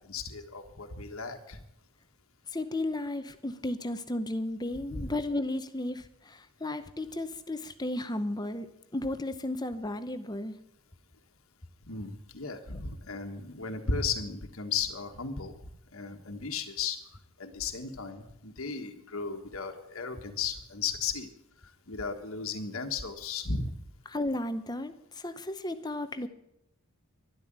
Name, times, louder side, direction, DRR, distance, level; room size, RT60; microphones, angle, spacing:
voice 1, 0.1-1.6 4.9-5.0 11.9-15.5 15.9-17.0 17.4-21.3 21.9-23.7, left 5 dB, 70° left, 5 dB, 1.5 m, -35 dB
voice 2, 2.5-10.6 12.7-12.8 24.1-26.3, left 1 dB, 20° left, 10 dB, 0.8 m, -34 dB
12.5 x 12.0 x 8.7 m, 0.80 s
head